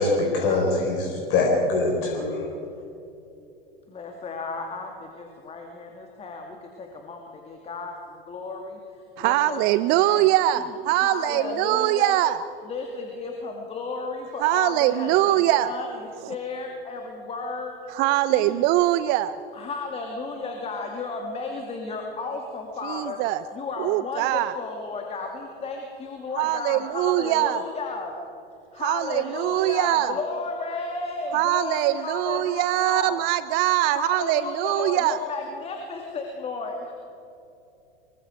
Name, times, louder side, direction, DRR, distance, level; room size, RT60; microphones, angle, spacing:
voice 1, 0.0-2.5, left 3 dB, 45° left, 0 dB, 4.8 m, -23 dB
voice 2, 3.9-8.8 9.2-10.3 11.0-12.2 12.6-17.8 18.3-18.7 19.5-23.2 23.5-28.1 28.7-33.2 33.9-36.9, left 3 dB, 20° left, 2 dB, 2.5 m, -33 dB
voice 3, 9.2-12.4 14.4-15.7 17.9-19.4 22.8-23.4 23.8-24.5 26.4-27.6 28.8-30.1 31.3-35.2, right 14 dB, 35° right, 15 dB, 0.6 m, -22 dB
25.0 x 23.5 x 4.7 m, 2.8 s
figure-of-eight pair, 95°, 29 cm